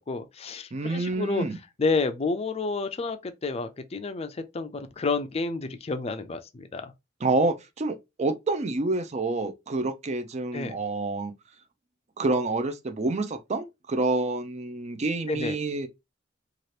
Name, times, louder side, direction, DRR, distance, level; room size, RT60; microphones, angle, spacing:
voice 1, 0.1-1.4 1.8-6.9 10.5-10.8 15.3-15.5, left 3 dB, 35° left, 0.4 m, -30 dB
voice 2, 0.7-1.6 7.2-11.3 12.2-15.9, right 3 dB, 35° right, 0.5 m, -28 dB
2.8 x 2.4 x 3.2 m
head